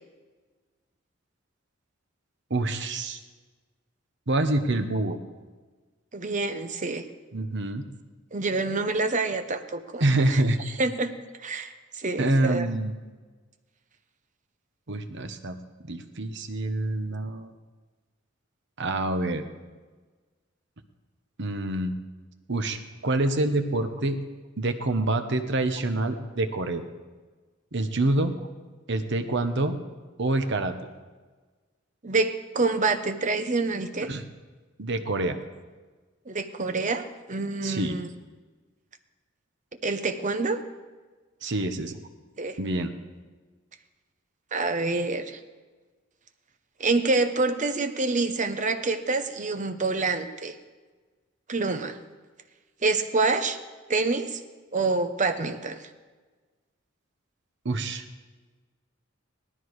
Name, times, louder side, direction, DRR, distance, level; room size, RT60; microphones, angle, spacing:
voice 1, 2.5-3.2 4.3-5.2 7.3-7.9 10.0-10.8 12.2-13.0 14.9-15.6 15.8-17.5 18.8-19.4 21.4-21.9 22.5-22.8 23.0-24.2 24.6-26.8 27.7-28.3 28.9-29.8 30.2-30.7 34.1-34.2 34.8-35.4 37.6-38.0 41.4-42.0 42.6-42.9 57.6-58.0, right 2 dB, 60° right, 8 dB, 1.1 m, -26 dB
voice 2, 6.1-7.0 8.3-10.0 10.3-10.4 10.8-11.1 11.4-12.7 32.0-34.1 36.3-38.1 39.8-40.6 42.4-42.6 44.5-45.4 46.8-50.5 51.5-52.0 52.8-53.6 53.9-54.4 54.7-55.8, right 3 dB, 40° right, 8 dB, 0.9 m, -27 dB
18.5 x 13.0 x 4.8 m, 1.3 s
head